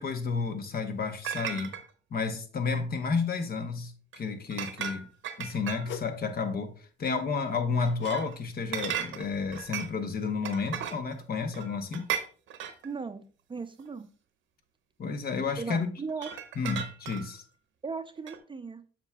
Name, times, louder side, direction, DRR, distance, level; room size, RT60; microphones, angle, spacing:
voice 1, 0.0-1.7 2.1-5.1 5.4-12.1 15.0-15.9 16.6-17.4, left 4 dB, 50° left, 0.9 m, -31 dB
sound 1, 1.2-1.8 4.1-4.2 4.5-6.1 7.8-8.4 8.7-10.0 10.5-11.2 11.5-12.9 13.8-13.9 16.1-17.4 18.3-18.4, right 9 dB, 75° right, 0.9 m, -36 dB
sound 2, 5.8-6.2 8.0-8.3 8.5-8.8 9.4-9.5, left 11 dB, 70° left, 0.4 m, -42 dB
voice 2, 12.8-14.1 15.6-16.3 17.8-18.8, right 4 dB, 25° right, 0.5 m, -37 dB
7.7 x 5.9 x 2.3 m
cardioid pair, 90°, 20 cm